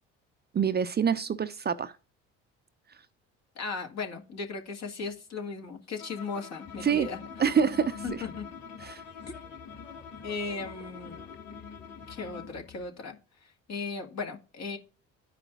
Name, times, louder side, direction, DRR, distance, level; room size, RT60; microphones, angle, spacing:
voice 1, 0.5-2.0 6.8-7.1 7.4-8.2 8.8-9.0, right 7 dB, 30° right, 0.6 m, -26 dB
voice 2, 3.6-7.2 8.0-8.5 9.3-9.4 10.2-11.2 12.1-13.2 13.7-14.8, left 4 dB, 50° left, 1.9 m, -36 dB
Bowed string instrument, 6.0-12.6, left 6 dB, 90° left, 1.2 m, -47 dB
sound 1, 6.6-12.9, left 5 dB, 30° left, 1.9 m, -47 dB
13.0 x 5.0 x 2.3 m
supercardioid pair, 70°, 33 cm